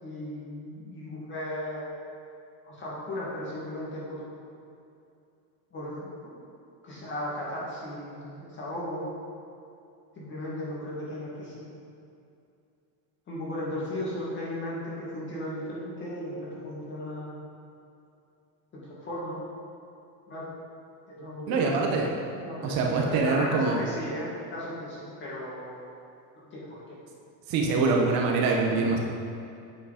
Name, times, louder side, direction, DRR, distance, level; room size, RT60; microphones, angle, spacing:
voice 1, 0.0-1.9 2.6-4.2 5.7-6.3 6.8-9.1 10.2-11.7 13.3-17.4 18.7-19.4 20.3-20.5 21.1-22.0 22.4-25.9 26.5-26.8, left 1 dB, 25° left, -7 dB, 2.0 m, -36 dB
voice 2, 21.5-22.1 22.6-23.8 27.5-29.0, right 4 dB, 55° right, 0 dB, 1.0 m, -24 dB
8.2 x 5.2 x 5.0 m, 2.6 s
cardioid pair, 170°, 43 cm